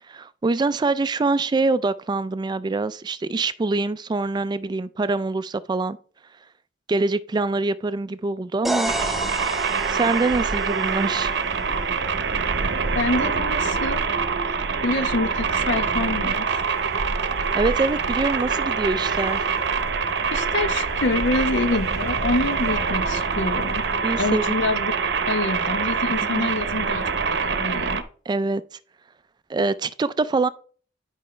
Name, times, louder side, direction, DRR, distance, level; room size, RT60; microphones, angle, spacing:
voice 1, 0.1-6.0 6.9-8.9 9.9-11.4 17.5-19.4 24.0-24.5 26.2-26.5 28.3-28.6 29.5-30.5, right 3 dB, 25° right, 0.3 m, -24 dB
sound 1, 8.6-12.5, right 1 dB, ahead, 0.7 m, -32 dB
sound 2, 8.8-28.0, right 5 dB, 65° right, 0.8 m, -25 dB
voice 2, 12.9-14.0 14.8-16.7 20.3-23.9 24.2-24.9 25.3-28.0, left 2 dB, 75° left, 0.9 m, -26 dB
sound 3, 16.6-23.9, equal, 15° left, 1.7 m, -44 dB
10.5 x 5.4 x 3.2 m
head